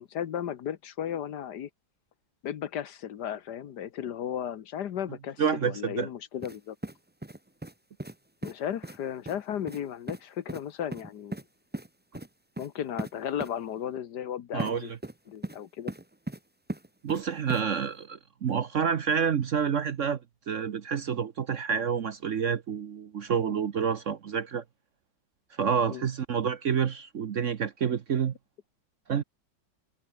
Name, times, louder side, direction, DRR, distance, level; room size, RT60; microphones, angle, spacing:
voice 1, 0.0-1.7 2.4-6.8 8.4-11.4 12.6-14.9 15.3-15.9 25.9-26.0, left 9 dB, 65° left, 1.5 m, -35 dB
voice 2, 5.4-6.1 14.5-15.0 17.0-20.2 20.5-24.6 25.6-28.3 29.1-29.2, right 7 dB, 50° right, 1.0 m, -28 dB
sound 1, 6.4-6.6 6.8-7.7 8.0-8.2 8.4-8.5 8.8-9.0 9.3-9.4 9.7-9.8 10.1-10.2 10.5-10.6 10.9-11.4 11.7-11.9 12.1-12.3 12.6-12.7 13.0-13.1 13.4-13.5 14.6-14.7 15.0-15.6 15.9-16.4 16.7-17.2 17.5-17.6, right 1 dB, 15° right, 0.4 m, -37 dB
omnidirectional pair, 2.0 m